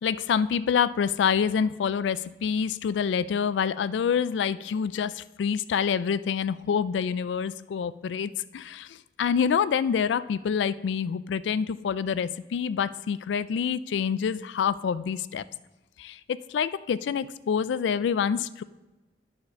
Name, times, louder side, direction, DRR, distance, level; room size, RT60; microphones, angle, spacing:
voice 1, 0.0-15.4 16.0-18.6, left 7 dB, 90° left, 16 dB, 0.3 m, -27 dB
10.5 x 4.4 x 5.2 m, 1.1 s
head